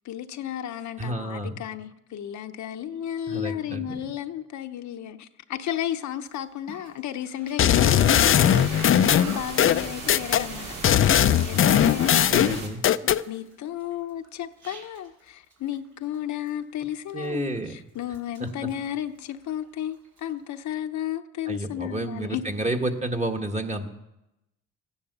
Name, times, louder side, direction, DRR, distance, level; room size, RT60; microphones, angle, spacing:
voice 1, 0.0-12.3 13.0-22.4, left 11 dB, 70° left, 0.9 m, -33 dB
voice 2, 1.0-1.6 3.3-4.1 8.4-8.6 12.3-12.8 17.1-17.7 18.4-18.7 21.5-23.9, right 1 dB, 25° right, 1.7 m, -30 dB
Cough, 6.3-6.4 6.7-11.1 11.4-15.2 15.5-15.9 16.1-16.6 17.1-17.7 18.0-19.7 20.0-20.3, right 3 dB, 70° right, 4.3 m, -42 dB
sound 1, 7.6-10.4 10.8-13.2, left 10 dB, 45° left, 0.5 m, -19 dB
sound 2, 7.7-12.7, right 3 dB, 85° right, 2.9 m, -37 dB
15.0 x 10.5 x 6.8 m
cardioid pair, 90°, 30 cm